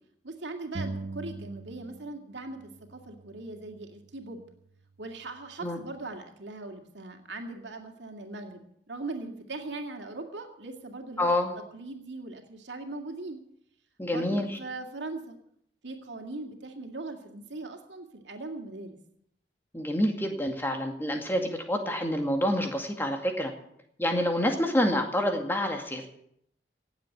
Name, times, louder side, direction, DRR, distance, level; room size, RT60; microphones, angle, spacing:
voice 1, 0.2-4.4 5.0-11.3 11.7-13.4 14.1-15.4 15.8-19.0, right 2 dB, 85° right, 3 dB, 2.3 m, -40 dB
sound 1, 0.7-2.3 2.5-4.3, right 3 dB, 55° right, 0.9 m, -41 dB
voice 2, 11.2-11.5 14.0-14.6 19.7-23.5 24.0-26.1, left 1 dB, 10° left, 3 dB, 2.1 m, -27 dB
17.5 x 7.9 x 8.7 m, 0.72 s
head